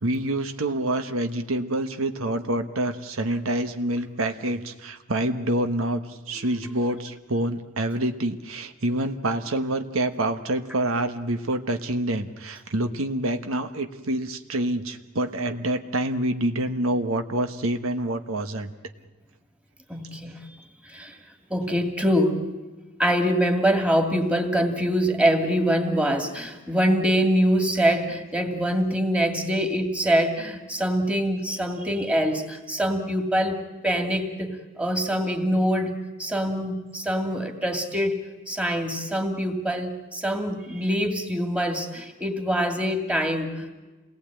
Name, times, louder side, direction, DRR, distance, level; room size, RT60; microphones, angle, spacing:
voice 1, 0.0-18.7, right 1 dB, 75° right, 8 dB, 1.2 m, -27 dB
voice 2, 6.4-6.7 19.9-20.4 20.8-21.2 21.5-22.4 23.0-38.2 38.5-43.7, equal, 5° right, 4 dB, 2.4 m, -24 dB
27.5 x 19.0 x 9.0 m, 1.2 s
head